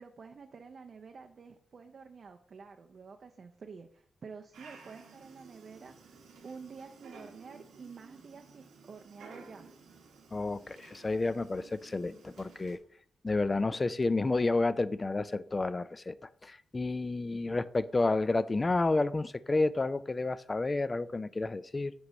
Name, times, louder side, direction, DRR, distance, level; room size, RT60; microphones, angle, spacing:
voice 1, 0.0-9.7 17.3-17.6, right 5 dB, 55° right, 5 dB, 0.4 m, -49 dB
Dog, 4.5-12.8, right 4 dB, 90° right, 1.0 m, -55 dB
voice 2, 10.3-12.8 13.2-16.1 16.4-21.9, left 3 dB, 30° left, 16 dB, 0.3 m, -30 dB
6.3 x 3.0 x 5.1 m, 0.62 s
cardioid pair, 70°, 0 cm